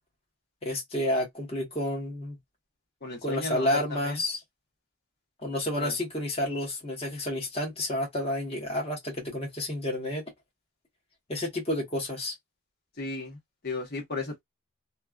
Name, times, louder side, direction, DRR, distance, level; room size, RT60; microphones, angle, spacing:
voice 1, 0.6-2.4 3.2-4.4 5.4-10.2 11.3-12.3, left 1 dB, 30° left, 1.2 m, -30 dB
voice 2, 3.0-4.2 5.8-5.9 13.0-13.4 13.6-14.4, left 3 dB, 50° left, 1.2 m, -34 dB
3.1 x 2.3 x 2.4 m
head